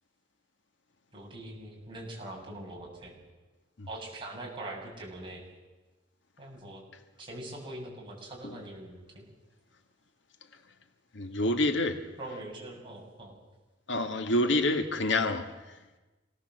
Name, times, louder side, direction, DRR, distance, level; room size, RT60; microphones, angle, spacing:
voice 1, 1.1-3.1 3.9-5.4 6.4-6.8 7.2-9.3 12.2-13.3, right 1 dB, 25° right, 7.7 m, -42 dB
voice 2, 11.1-12.0 13.9-15.5, left 2 dB, 75° left, 1.9 m, -27 dB
27.0 x 18.5 x 7.8 m
head